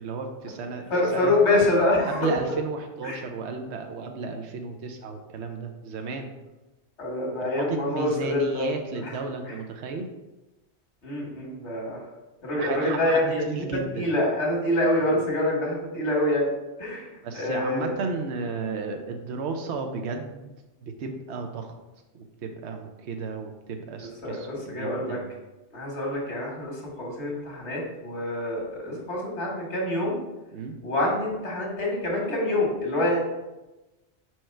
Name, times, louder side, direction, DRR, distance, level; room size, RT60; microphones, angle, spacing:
voice 1, 0.0-0.9 1.1-1.3 2.1-6.3 7.4-10.1 12.6-14.1 15.0-15.1 17.2-20.5 20.8-21.7 22.1-25.3 28.9-29.1 30.5-30.8, right 4 dB, 80° right, 4 dB, 1.0 m, -33 dB
voice 2, 0.9-2.3 3.0-3.2 7.0-8.7 9.0-9.1 9.5-9.6 11.0-12.0 12.4-16.5 16.8-17.9 24.0-25.2 25.7-30.2 30.8-33.3, left 1 dB, 80° left, -1 dB, 1.9 m, -26 dB
4.7 x 4.6 x 4.4 m, 1.0 s
omnidirectional pair, 1.1 m